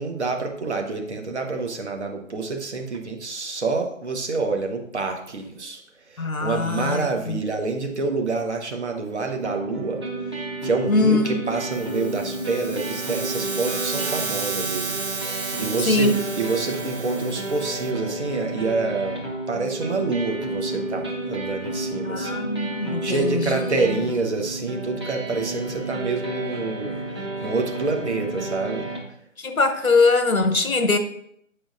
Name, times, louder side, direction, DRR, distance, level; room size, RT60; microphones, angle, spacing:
voice 1, 0.0-5.8 6.1-10.0 10.6-22.4 23.0-26.9 27.4-28.9, right 3 dB, 55° right, 3 dB, 1.1 m, -27 dB
voice 2, 6.2-7.4 10.9-11.3 15.8-16.1 22.0-23.6 29.4-31.0, left 3 dB, 90° left, 7 dB, 1.0 m, -21 dB
sound 1, 9.4-29.0, right 2 dB, 20° right, 0.7 m, -31 dB
sound 2, 11.7-17.9, right 4 dB, 85° right, 1.1 m, -32 dB
8.4 x 5.0 x 2.5 m, 0.71 s
figure-of-eight pair, 150°, 41 cm